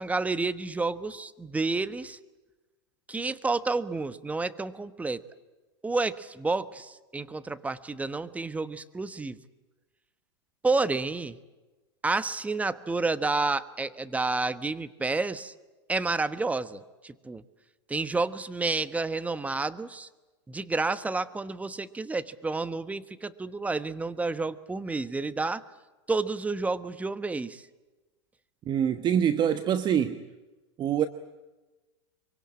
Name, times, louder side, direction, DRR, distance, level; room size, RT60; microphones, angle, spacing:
voice 1, 0.0-2.2 3.1-5.2 5.8-9.4 10.6-11.4 12.0-15.5 15.9-17.4 17.9-20.1 20.5-25.6 26.1-27.6, right 3 dB, 10° right, 13 dB, 1.2 m, -30 dB
voice 2, 28.7-30.2 30.8-31.1, right 9 dB, 30° right, 11 dB, 1.1 m, -25 dB
25.0 x 24.0 x 8.7 m, 1.2 s
hypercardioid pair, 110°, 15 cm